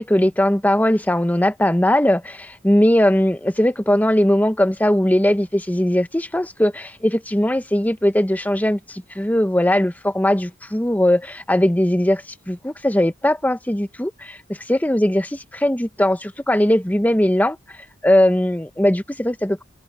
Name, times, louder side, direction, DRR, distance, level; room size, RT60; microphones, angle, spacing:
voice 1, 0.0-14.4 14.7-17.6 18.0-19.6, left 1 dB, 10° left, 0.8 m, -19 dB
open air
head